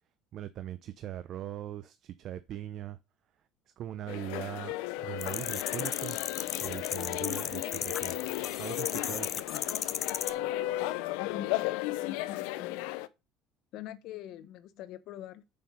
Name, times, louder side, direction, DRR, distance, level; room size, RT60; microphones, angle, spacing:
voice 1, 0.3-3.0 3.8-6.2 6.6-9.6, right 12 dB, 50° right, 0.6 m, -41 dB
sound 1, 4.1-13.1, left 16 dB, 85° left, 0.6 m, -35 dB
sound 2, 5.2-10.3, left 8 dB, 35° left, 0.6 m, -35 dB
voice 2, 11.2-12.9 13.7-15.4, left 11 dB, 60° left, 1.0 m, -44 dB
6.8 x 5.7 x 5.5 m
cardioid pair, 130°, 0 cm